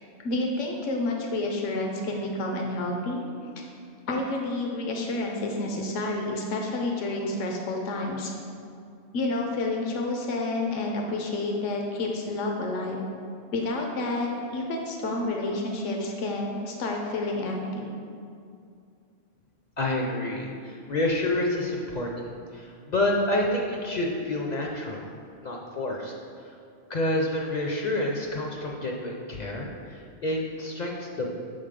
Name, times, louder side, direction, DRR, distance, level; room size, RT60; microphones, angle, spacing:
voice 1, 0.2-3.2 3.6-3.7 4.1-8.3 9.1-13.0 13.5-17.9, left 2 dB, 85° left, 1 dB, 1.0 m, -29 dB
voice 2, 19.8-25.1 25.4-26.1 26.9-31.3, left 1 dB, 50° left, -1 dB, 0.5 m, -28 dB
6.3 x 3.8 x 5.0 m, 2.4 s
omnidirectional pair, 1.2 m